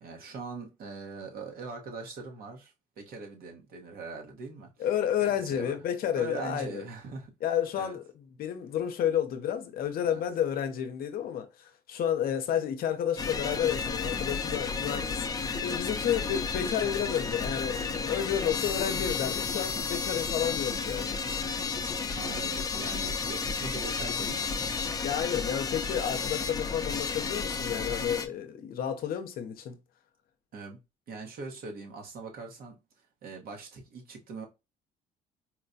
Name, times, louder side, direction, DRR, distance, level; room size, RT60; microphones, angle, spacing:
voice 1, 0.0-4.9 5.2-5.7 6.1-8.0 10.0-10.2 16.1-16.3 22.1-24.6 30.5-30.8 31.1-32.8 33.2-34.4, right 4 dB, 60° right, 1.1 m, -42 dB
voice 2, 4.8-6.8 7.4-8.0 8.4-15.3 15.6-21.5 25.0-29.8, left 9 dB, 60° left, 0.6 m, -31 dB
sound 1, 13.2-28.3, left 5 dB, 20° left, 0.5 m, -32 dB
4.3 x 2.2 x 2.6 m
cardioid pair, 110°, 17 cm